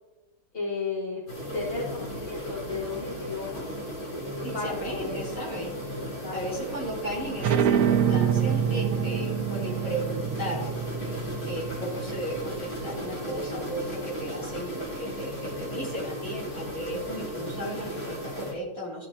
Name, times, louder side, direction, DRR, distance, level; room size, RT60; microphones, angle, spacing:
voice 1, 0.5-1.2 1.5-3.6 4.5-5.2 5.9-6.4, left 4 dB, 40° left, -8 dB, 2.7 m, -34 dB
sound 1, 1.3-18.5, equal, 85° left, 3.3 m, -36 dB
voice 2, 4.4-5.7 6.3-10.7 11.4-19.1, right 1 dB, 65° left, -7 dB, 3.5 m, -35 dB
sound 2, 7.4-12.7, right 8 dB, 85° right, 1.1 m, -26 dB
14.5 x 5.1 x 2.9 m, 1.1 s
omnidirectional pair, 1.5 m